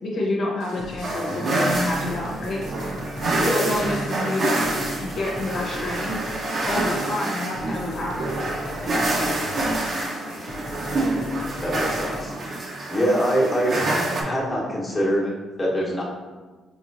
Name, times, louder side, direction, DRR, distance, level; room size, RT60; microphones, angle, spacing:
voice 1, 0.0-2.6 3.4-6.2 6.7-8.1, left 2 dB, 65° left, -3 dB, 0.9 m, -28 dB
sound 1, 0.6-12.3, left 2 dB, 90° left, 0.6 m, -39 dB
sound 2, 1.0-14.2, right 2 dB, 50° right, 0.8 m, -27 dB
voice 2, 3.3-3.7 11.6-12.3 12.9-13.7 14.2-16.0, equal, 20° left, -5 dB, 1.0 m, -24 dB
4.8 x 3.0 x 2.6 m, 1.3 s
cardioid pair, 90°, 0 cm